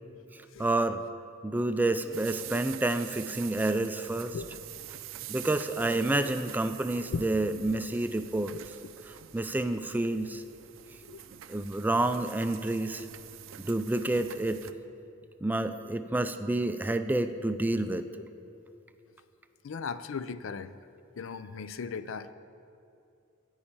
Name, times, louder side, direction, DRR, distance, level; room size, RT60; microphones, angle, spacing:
voice 1, 0.3-1.0 1.4-4.4 5.3-8.5 9.1-10.4 11.5-13.1 13.6-14.7 15.4-18.1, right 2 dB, 10° right, 9 dB, 0.3 m, -29 dB
sound 1, 2.1-14.7, right 12 dB, 80° right, 0.5 m, -46 dB
voice 2, 19.6-20.8 21.2-22.3, left 5 dB, 80° left, 14 dB, 0.4 m, -37 dB
13.0 x 5.6 x 8.8 m, 2.6 s
head